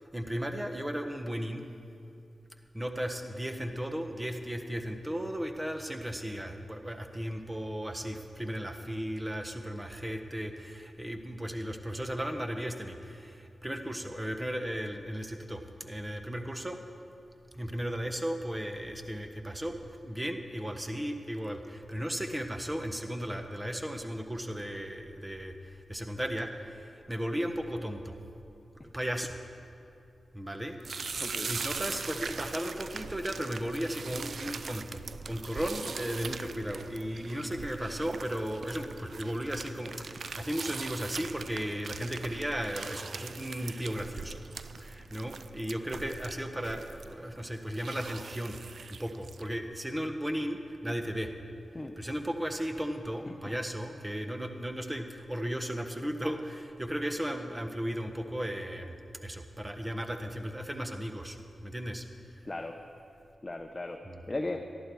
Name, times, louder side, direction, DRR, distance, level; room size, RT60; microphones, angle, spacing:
voice 1, 0.0-1.6 2.7-16.8 17.5-28.1 28.8-29.4 30.3-44.4 44.8-48.6 48.9-51.3 51.7-59.0 59.2-62.4 64.0-64.2, equal, 15° right, 6 dB, 1.2 m, -35 dB
sound 1, 30.8-49.5, right 5 dB, 70° right, 0.4 m, -41 dB
voice 2, 31.2-31.5 51.7-52.0 53.2-53.6 62.5-62.8 63.4-64.0 64.3-64.7, left 2 dB, 35° left, 4 dB, 0.8 m, -37 dB
13.0 x 11.5 x 4.7 m, 2.6 s
cardioid pair, 45°, 0 cm